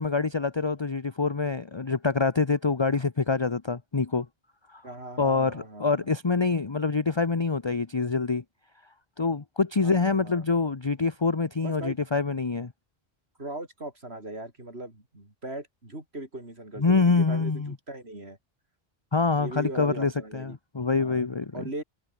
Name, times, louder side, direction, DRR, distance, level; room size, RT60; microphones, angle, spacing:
voice 1, 0.0-4.3 4.7-4.8 5.2-8.4 9.2-12.7 16.8-17.7 19.1-21.7, left 4 dB, 30° left, 0.9 m, -25 dB
voice 2, 4.8-6.1 9.8-10.5 11.6-12.0 13.4-18.4 19.4-20.6 21.0-21.3 21.5-21.8, right 1 dB, 85° right, 6.3 m, -39 dB
omnidirectional pair, 1.0 m